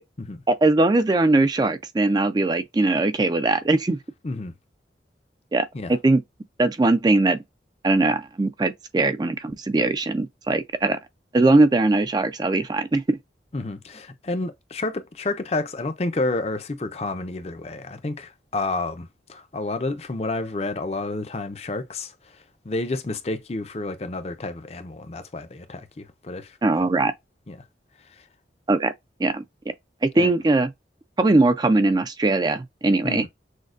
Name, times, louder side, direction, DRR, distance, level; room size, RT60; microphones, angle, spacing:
voice 1, 0.5-4.0 5.5-6.2 6.6-7.4 7.8-11.0 11.3-13.2 26.6-27.1 28.7-28.9 29.2-29.4 30.0-30.7 31.2-33.3, right 2 dB, 25° right, 0.3 m, -20 dB
voice 2, 13.5-26.9 27.5-27.6 28.2-28.3 30.1-30.3 33.0-33.3, left 2 dB, 35° left, 0.5 m, -30 dB
6.3 x 2.2 x 2.4 m
head